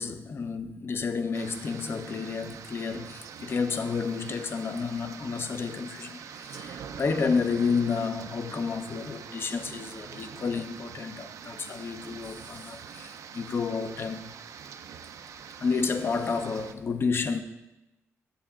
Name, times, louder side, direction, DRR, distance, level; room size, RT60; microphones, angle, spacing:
voice 1, 0.0-14.3 15.6-17.4, left 5 dB, 45° left, 0.5 m, -30 dB
sound 1, 1.3-16.7, right 7 dB, 80° right, 0.4 m, -44 dB
7.6 x 6.9 x 3.6 m
cardioid pair, 105°, 5 cm